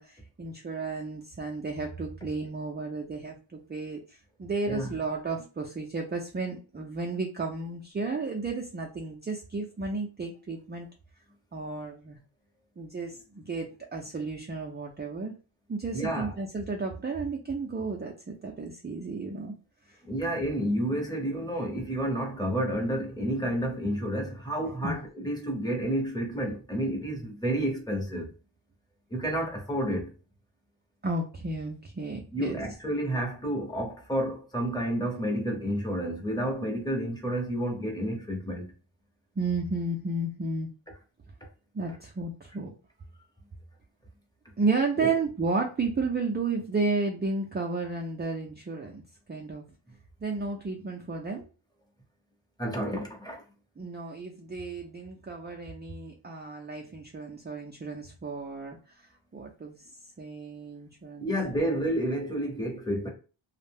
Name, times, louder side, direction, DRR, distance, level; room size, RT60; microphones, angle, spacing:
voice 1, 0.0-10.9 11.5-12.2 12.8-15.3 15.7-19.5 19.9-20.0 24.6-25.0 31.0-32.6 39.4-40.7 41.7-42.7 44.6-49.0 49.3-49.6 50.2-51.4 53.8-58.8 59.3-59.8 60.2-61.3 61.6-61.8, right 3 dB, 25° right, 0.3 m, -33 dB
voice 2, 15.9-16.3 20.0-28.3 29.1-30.1 32.3-38.7 45.0-45.1 52.6-53.4 61.2-63.1, right 1 dB, 10° left, 0.7 m, -30 dB
2.4 x 2.0 x 3.4 m
wide cardioid pair, 110°, 49 cm